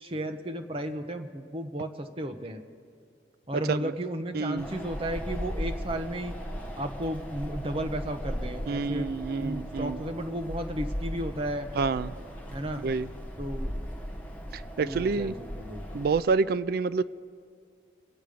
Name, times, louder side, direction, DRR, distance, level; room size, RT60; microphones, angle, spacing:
voice 1, 0.0-2.6 3.5-6.3 6.8-9.1 9.4-11.7 12.5-12.9 13.4-13.7 14.8-16.0, right 1 dB, 30° right, 7 dB, 0.7 m, -34 dB
voice 2, 3.5-3.9 4.3-4.7 8.7-10.0 11.8-12.1 12.8-13.1 14.5-15.3 15.9-17.0, right 4 dB, 55° right, 16 dB, 0.3 m, -28 dB
Wind, 4.6-16.2, equal, 10° left, 1.1 m, -37 dB
23.5 x 8.1 x 5.0 m, 2.2 s
head